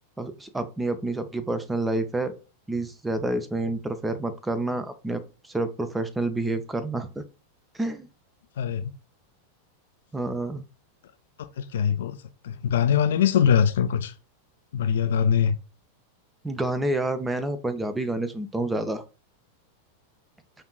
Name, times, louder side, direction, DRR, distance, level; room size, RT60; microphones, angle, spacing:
voice 1, 0.2-2.3 2.7-7.2 7.8-8.1 10.1-10.6 16.4-19.0, right 2 dB, 10° right, 0.4 m, -28 dB
voice 2, 8.6-8.9 11.6-12.2 12.4-14.1 14.7-15.5, left 8 dB, 60° left, 0.3 m, -22 dB
5.2 x 2.5 x 2.2 m
figure-of-eight pair, 90°, 0 cm